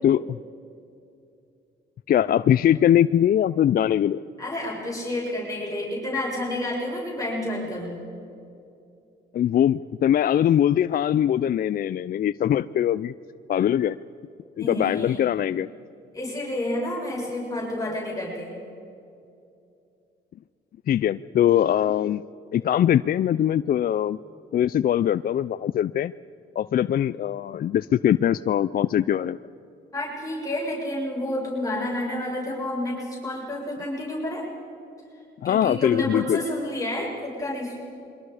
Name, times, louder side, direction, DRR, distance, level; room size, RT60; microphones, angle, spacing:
voice 1, 0.0-0.4 2.1-4.2 9.3-13.1 13.5-14.0 14.6-15.7 20.9-22.2 22.5-24.2 24.5-26.1 26.6-29.4 35.4-36.4, left 10 dB, 50° left, 14 dB, 0.4 m, -22 dB
voice 2, 4.4-8.0 14.6-15.2 16.1-18.6 29.9-34.5 35.4-37.8, left 1 dB, 15° left, -4 dB, 6.7 m, -30 dB
27.5 x 23.5 x 4.9 m, 2.6 s
cardioid pair, 90°, 20 cm